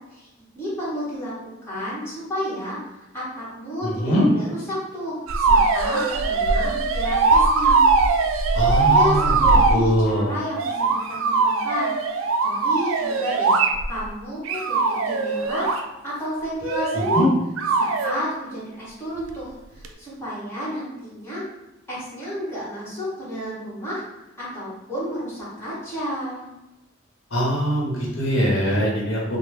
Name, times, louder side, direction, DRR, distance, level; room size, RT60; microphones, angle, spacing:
voice 1, 0.5-1.3 1.6-2.8 3.1-7.8 8.7-13.5 13.9-15.7 16.0-17.3 17.8-21.4 21.9-24.0 24.4-26.5, equal, 10° left, -10 dB, 1.2 m, -31 dB
voice 2, 3.8-4.2 8.5-9.2 9.7-10.3 17.1-17.3 27.3-29.4, equal, 80° left, -4 dB, 0.9 m, -22 dB
sound 1, 5.3-9.8 10.6-14.0 14.5-15.8 16.6-17.3 17.6-18.1 19.8-19.9, right 3 dB, 80° right, 0.3 m, -20 dB
3.1 x 2.1 x 3.3 m, 1.0 s
head